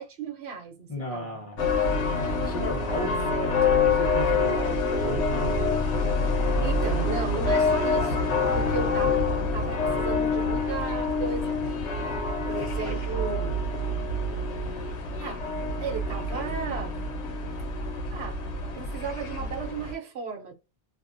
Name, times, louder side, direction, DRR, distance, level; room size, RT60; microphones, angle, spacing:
voice 1, 0.0-1.4 3.3-3.7 6.6-9.2 9.5-11.8 12.5-13.6 15.2-15.4 15.8-16.9 18.1-18.4 18.7-20.5, right 5 dB, 65° right, 1.0 m, -35 dB
voice 2, 0.9-1.8 2.4-3.2 3.4-5.6 12.6-13.0 13.8-13.9 16.3-16.8, equal, 30° left, 1.0 m, -35 dB
sound 1, 1.6-19.9, left 3 dB, 80° left, 1.1 m, -26 dB
2.7 x 2.1 x 2.4 m
omnidirectional pair, 1.2 m